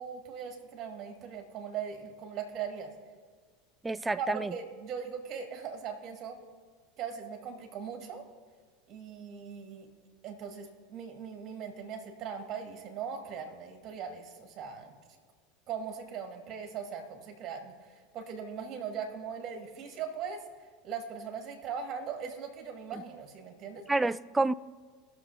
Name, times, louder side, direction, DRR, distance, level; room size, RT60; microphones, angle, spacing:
voice 1, 0.0-2.9 4.2-6.4 7.0-8.3 8.9-9.9 10.2-15.0 15.7-17.7 18.1-20.4 20.8-23.8, right 6 dB, 45° right, 4 dB, 2.1 m, -39 dB
voice 2, 3.8-4.5 22.9-23.0 23.9-24.5, right 2 dB, 15° right, 18 dB, 0.3 m, -29 dB
20.0 x 6.7 x 2.8 m, 1.5 s
hypercardioid pair, 85°, 0 cm